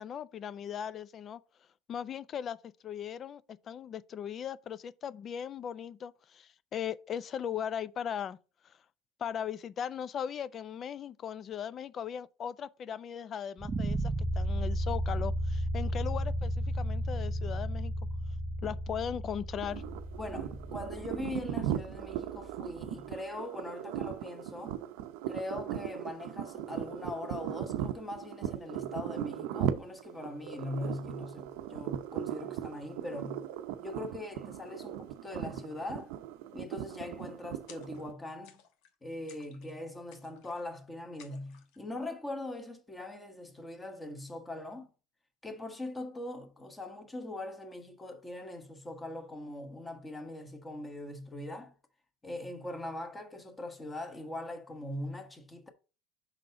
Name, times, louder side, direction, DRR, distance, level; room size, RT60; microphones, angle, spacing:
voice 1, 0.0-1.4 1.9-2.6 2.8-8.4 8.6-8.7 9.2-17.9 18.6-19.8, left 8 dB, 40° left, 0.4 m, -38 dB
sound 1, 13.6-22.6, equal, 20° right, 0.6 m, -34 dB
sound 2, 19.6-38.1, right 11 dB, 70° right, 0.6 m, -38 dB
voice 2, 20.1-24.8 25.3-33.4 33.8-36.1 36.5-38.6 39.0-44.9 45.4-51.7 52.2-55.7, left 2 dB, 15° left, 1.2 m, -41 dB
sound 3, 37.7-38.2 38.4-38.9 39.3-39.8 40.1-40.8 41.2-41.8, left 8 dB, 70° left, 1.1 m, -58 dB
5.6 x 3.9 x 4.7 m
supercardioid pair, 100°, 0 cm